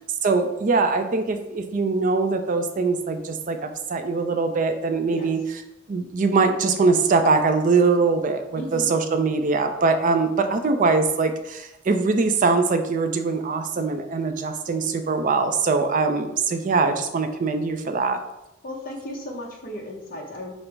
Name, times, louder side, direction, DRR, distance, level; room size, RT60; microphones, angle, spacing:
voice 1, 0.2-5.4 5.9-18.2, right 4 dB, 40° right, 7 dB, 0.4 m, -22 dB
voice 2, 8.5-8.9 18.6-20.5, left 1 dB, 45° left, 0 dB, 0.7 m, -35 dB
5.2 x 2.0 x 4.4 m, 0.91 s
head